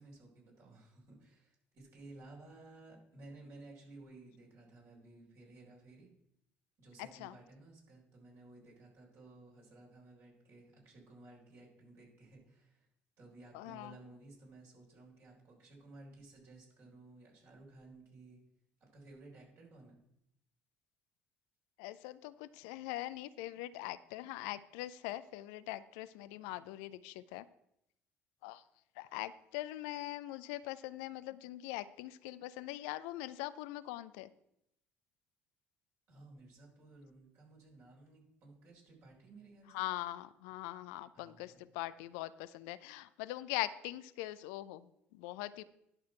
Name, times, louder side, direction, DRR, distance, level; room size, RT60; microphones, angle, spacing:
voice 1, 0.0-6.1 6.8-12.9 13.2-18.4 18.8-20.0 36.1-39.9 41.1-41.6, right 2 dB, 50° right, -2 dB, 4.0 m, -56 dB
voice 2, 7.0-7.3 13.5-14.0 21.8-27.5 28.4-28.6 29.0-34.3 39.7-45.6, left 16 dB, 65° left, 15 dB, 0.4 m, -42 dB
11.0 x 5.7 x 4.4 m, 0.78 s
figure-of-eight pair, 55°, 6 cm